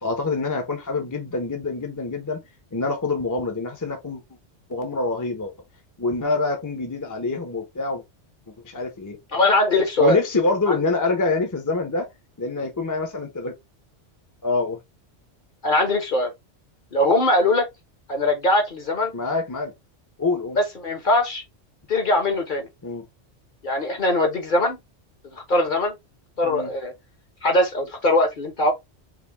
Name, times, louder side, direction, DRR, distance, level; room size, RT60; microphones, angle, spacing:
voice 1, 0.0-2.4 2.7-4.2 4.7-5.5 6.0-8.0 8.6-9.2 10.0-12.1 12.4-13.5 14.4-14.8 19.1-19.7 20.2-20.6 22.8-23.0 26.4-26.7, left 3 dB, 20° left, 0.7 m, -25 dB
voice 2, 9.3-10.2 10.7-10.8 15.6-16.3 16.9-17.7 18.1-19.1 20.6-21.4 21.9-22.7 23.6-24.8 25.3-25.9 26.4-26.9 27.4-28.7, left 1 dB, 45° left, 1.1 m, -21 dB
4.9 x 2.3 x 3.4 m
omnidirectional pair, 1.2 m